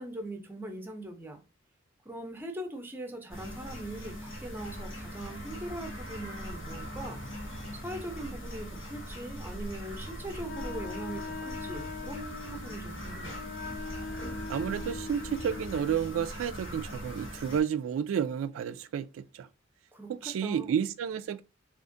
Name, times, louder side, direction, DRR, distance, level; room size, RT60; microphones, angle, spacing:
voice 1, 0.0-1.4 2.0-7.2 7.7-13.4 19.9-20.8, right 1 dB, 10° right, 0.5 m, -41 dB
sound 1, 3.3-17.6, equal, 80° left, 1.1 m, -41 dB
Wind instrument woodwind instrument, 10.4-16.0, left 4 dB, 50° left, 0.3 m, -41 dB
voice 2, 14.5-19.5 20.1-21.4, right 8 dB, 85° right, 0.3 m, -31 dB
3.5 x 2.5 x 2.5 m
head